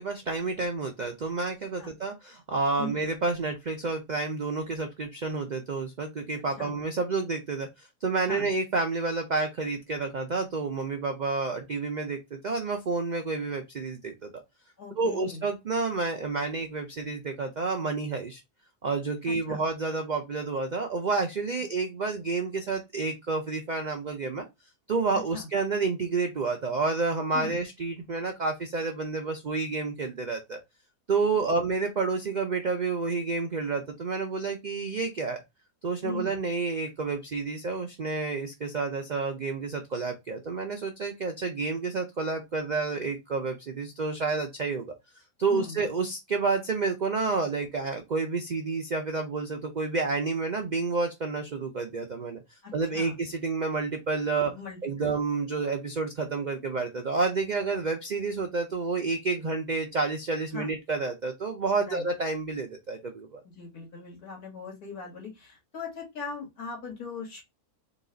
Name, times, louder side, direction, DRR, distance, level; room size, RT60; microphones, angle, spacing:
voice 1, 0.0-14.3 15.0-18.4 18.8-24.5 24.9-30.6 31.1-35.4 35.8-44.9 45.4-52.4 52.7-54.5 54.8-63.4, right 4 dB, 75° right, 0.4 m, -29 dB
voice 2, 14.8-15.4 19.3-19.6 25.1-25.5 27.3-27.6 31.3-31.6 36.0-36.3 45.5-45.8 52.6-53.2 54.4-55.1 60.5-60.7 61.8-62.0 63.4-67.4, left 5 dB, 90° left, 2.3 m, -40 dB
4.0 x 2.3 x 3.8 m
omnidirectional pair, 1.5 m